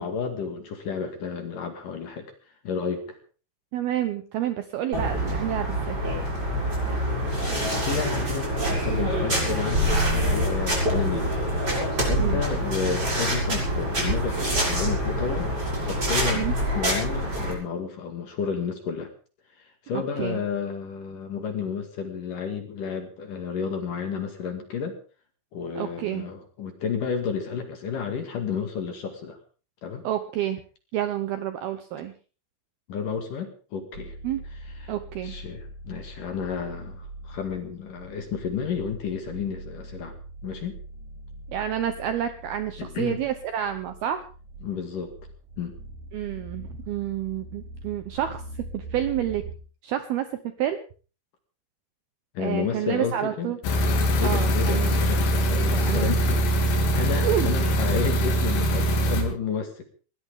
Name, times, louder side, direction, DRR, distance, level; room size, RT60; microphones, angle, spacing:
voice 1, 0.0-2.3 2.6-3.2 6.8-11.3 12.0-15.5 15.8-16.5 16.7-19.1 19.8-25.0 25.5-29.4 29.8-30.1 32.9-34.2 34.8-34.9 35.2-40.1 40.4-40.8 42.8-43.2 44.6-45.1 45.6-45.8 52.3-53.5 54.2-59.8, left 6 dB, 55° left, 6 dB, 3.0 m, -31 dB
voice 2, 3.7-6.0 12.2-12.4 16.4-16.6 19.9-20.4 25.8-26.3 30.0-30.6 30.9-32.1 34.2-34.4 34.9-35.4 41.5-44.2 46.1-48.4 48.7-49.4 49.8-50.3 50.6-50.9 52.4-53.6 54.2-55.0 55.7-56.2 57.2-57.5, right 11 dB, 75° right, 9 dB, 2.3 m, -29 dB
sound 1, 4.9-17.5, equal, 20° right, 6.9 m, -25 dB
sound 2, 33.9-49.6, right 1 dB, 45° right, 3.2 m, -42 dB
sound 3, 53.6-59.2, equal, 90° left, 5.6 m, -22 dB
20.5 x 17.5 x 3.7 m, 0.37 s
omnidirectional pair, 5.6 m